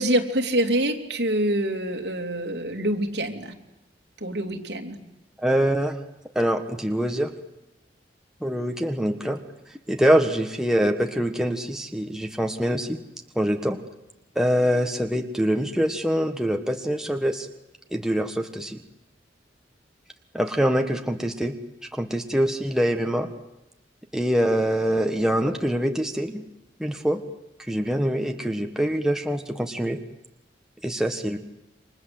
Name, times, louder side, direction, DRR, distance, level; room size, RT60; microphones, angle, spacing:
voice 1, 0.0-3.5 4.2-5.0, right 1 dB, 65° right, 3 dB, 3.1 m, -25 dB
voice 2, 5.4-6.0 6.3-7.3 8.4-9.4 9.9-13.0 13.3-13.8 14.3-17.5 17.9-18.8 20.3-21.5 21.9-23.3 24.1-26.4 26.8-27.2 27.7-30.0 30.8-31.4, equal, 5° right, 4 dB, 1.4 m, -24 dB
29.0 x 25.0 x 7.9 m, 0.95 s
head